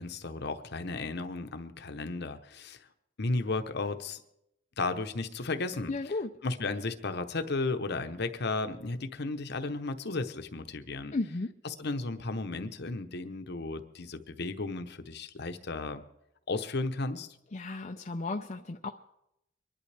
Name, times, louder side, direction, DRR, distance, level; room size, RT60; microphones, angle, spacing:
voice 1, 0.0-2.9 3.2-4.2 4.8-5.9 6.4-11.1 11.8-16.0 16.5-17.3, left 3 dB, 55° left, 8 dB, 0.9 m, -34 dB
voice 2, 5.9-6.3 11.1-11.5 17.5-18.9, left 3 dB, 35° left, 3 dB, 0.5 m, -34 dB
24.5 x 11.5 x 3.4 m, 0.84 s
head